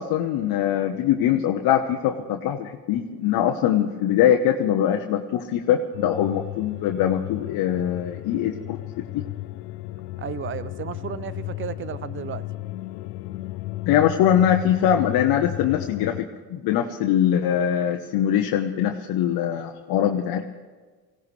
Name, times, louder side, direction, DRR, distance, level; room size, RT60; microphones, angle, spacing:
voice 1, 0.0-8.8 9.1-9.2 13.8-20.4, left 10 dB, 50° left, 4 dB, 1.0 m, -22 dB
sound 1, 5.9-16.2, left 17 dB, 80° left, 0.8 m, -34 dB
voice 2, 10.2-12.4, right 8 dB, 25° right, 17 dB, 0.5 m, -33 dB
21.0 x 16.5 x 3.3 m, 1.4 s
supercardioid pair, 95°, 46 cm